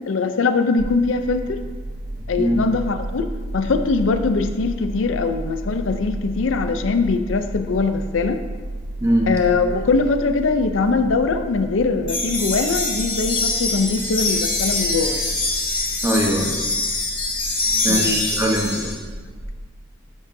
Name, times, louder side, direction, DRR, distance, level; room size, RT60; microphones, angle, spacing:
voice 1, 0.0-1.6 2.3-8.4 9.3-15.2 17.9-18.3, left 4 dB, 75° left, 8 dB, 0.5 m, -22 dB
sound 1, 0.8-19.4, right 1 dB, 45° right, 1.5 m, -33 dB
sound 2, 12.1-18.9, left 2 dB, 25° left, 1.2 m, -24 dB
voice 2, 16.0-16.6 17.6-18.9, right 1 dB, 15° right, 0 dB, 1.0 m, -21 dB
9.1 x 8.0 x 2.7 m, 1.4 s
head